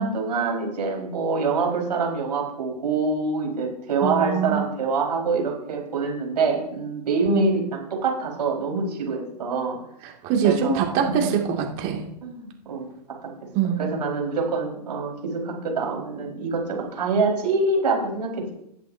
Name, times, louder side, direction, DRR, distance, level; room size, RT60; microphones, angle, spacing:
voice 1, 0.0-9.8 10.4-10.8 12.2-12.9 13.8-18.5, right 4 dB, 75° right, 0 dB, 4.7 m, -25 dB
voice 2, 4.0-4.6 7.3-7.6 10.0-12.0 13.5-14.0, right 8 dB, 40° right, 1 dB, 2.3 m, -23 dB
18.0 x 7.7 x 2.7 m, 0.77 s
hypercardioid pair, 120°, 21 cm